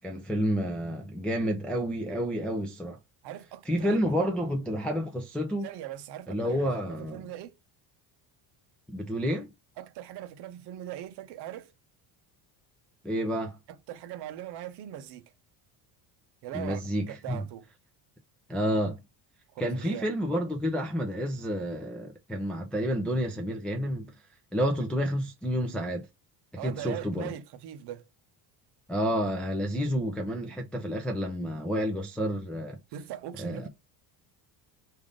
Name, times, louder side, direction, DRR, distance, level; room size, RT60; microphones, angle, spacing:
voice 1, 0.0-3.0 3.7-5.7 6.3-7.3 8.9-9.5 13.0-13.6 16.5-17.4 18.5-19.0 19.6-24.1 24.5-26.1 26.5-27.3 28.9-32.8 33.4-33.7, equal, 5° left, 0.3 m, -30 dB
voice 2, 3.2-4.0 5.6-7.5 9.8-11.7 13.7-15.3 16.4-16.8 17.1-17.7 19.5-20.1 26.6-28.0 32.9-33.7, right 11 dB, 55° right, 0.8 m, -40 dB
3.4 x 2.6 x 3.6 m
cardioid pair, 160°, 48 cm